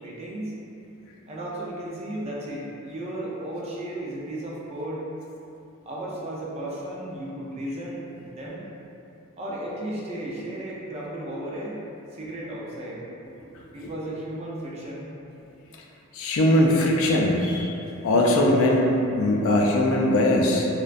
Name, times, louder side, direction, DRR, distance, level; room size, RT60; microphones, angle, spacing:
voice 1, 0.0-0.5 1.3-5.0 5.8-8.6 9.4-11.8 12.1-13.1 13.7-15.1, right 1 dB, 30° right, -5 dB, 0.4 m, -34 dB
voice 2, 16.1-17.7 18.0-20.7, left 1 dB, 75° left, 0 dB, 0.3 m, -20 dB
2.3 x 2.1 x 2.5 m, 2.8 s
head